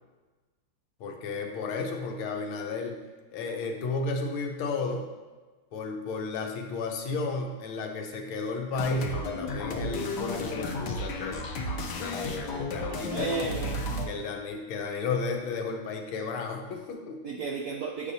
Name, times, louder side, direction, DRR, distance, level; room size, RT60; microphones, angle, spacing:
voice 1, 1.0-3.0 3.3-5.1 5.7-11.4 12.0-13.4 14.1-17.2, left 3 dB, 85° left, 2 dB, 1.6 m, -33 dB
sound 1, 8.7-14.1, left 2 dB, 65° left, 1.2 m, -33 dB
voice 2, 12.7-13.8 17.2-18.1, right 4 dB, 80° right, 0 dB, 0.8 m, -33 dB
9.0 x 4.9 x 2.7 m, 1.3 s
omnidirectional pair, 2.3 m